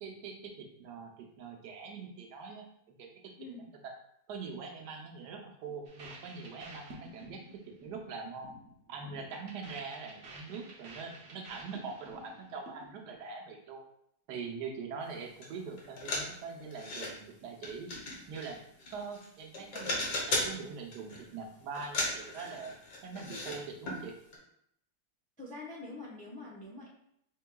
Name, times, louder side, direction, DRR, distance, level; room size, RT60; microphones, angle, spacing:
voice 1, 0.0-3.1 3.8-3.9 4.3-7.4 7.8-8.5 8.9-13.8 14.3-17.9 18.3-18.6 18.9-22.7 23.0-24.2, right 5 dB, 85° right, 2 dB, 1.3 m, -43 dB
sound 1, 5.9-13.1, right 2 dB, 50° right, 0.8 m, -52 dB
sound 2, 15.4-15.5 15.8-17.1 17.6-19.3 19.5-20.6 20.9-21.3 21.7-23.6 23.9-24.0 24.3-24.4, left 2 dB, 90° left, 1.6 m, -36 dB
voice 2, 25.4-26.9, left 2 dB, 10° left, -4 dB, 0.4 m, -45 dB
4.5 x 3.6 x 2.2 m, 0.73 s
omnidirectional pair, 1.7 m